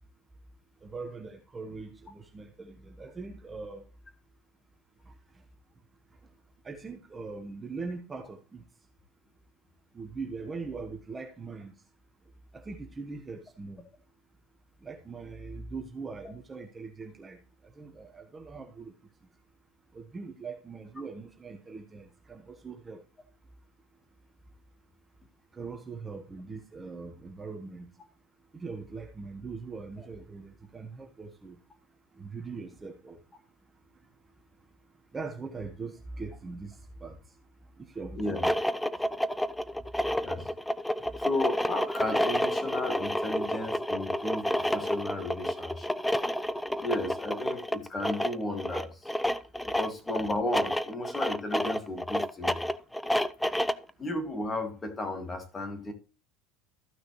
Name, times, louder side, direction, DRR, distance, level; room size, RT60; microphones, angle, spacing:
voice 1, 0.8-3.9 5.1-5.2 6.6-8.6 9.9-11.7 12.5-13.8 14.8-17.4 17.8-18.9 19.9-23.0 25.5-27.9 28.5-31.6 32.1-33.2 35.1-37.2 37.8-38.6 41.0-41.1, right 4 dB, 20° right, 1.3 m, -41 dB
voice 2, 38.1-38.5 40.2-40.5 41.2-46.0 46.8-49.1 49.7-52.7 54.0-55.9, left 1 dB, 20° left, 2.4 m, -34 dB
sound 1, 38.2-53.9, equal, 5° left, 0.6 m, -30 dB
14.0 x 6.1 x 3.2 m
supercardioid pair, 125°, 0 cm